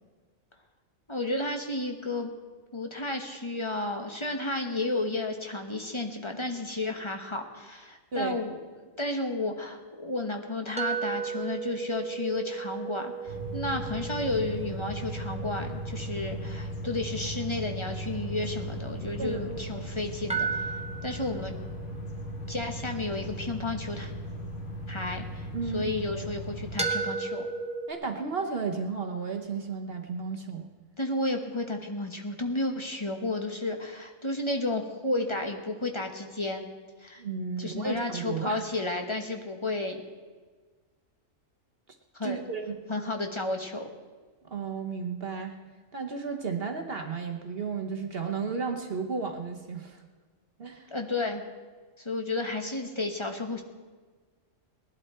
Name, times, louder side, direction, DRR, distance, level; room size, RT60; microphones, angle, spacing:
voice 1, 1.1-2.3 2.7-8.6 9.0-21.5 22.5-24.1 24.9-27.5 31.0-36.7 37.0-37.2 37.6-40.0 42.1-42.4 42.9-43.9 50.9-51.4 52.0-53.6, left 2 dB, 25° left, 3 dB, 1.2 m, -32 dB
sound 1, 10.8-19.7 20.3-25.4 26.8-27.9, right 5 dB, 5° right, 1.2 m, -36 dB
sound 2, 13.3-26.8, equal, 50° left, 2.1 m, -37 dB
voice 2, 19.2-19.8 25.5-25.9 27.9-30.7 37.2-38.6 42.2-42.8 44.4-45.6 45.9-50.0 50.6-50.9, right 5 dB, 50° right, 4 dB, 1.3 m, -33 dB
19.0 x 11.5 x 4.4 m, 1.4 s
omnidirectional pair, 1.4 m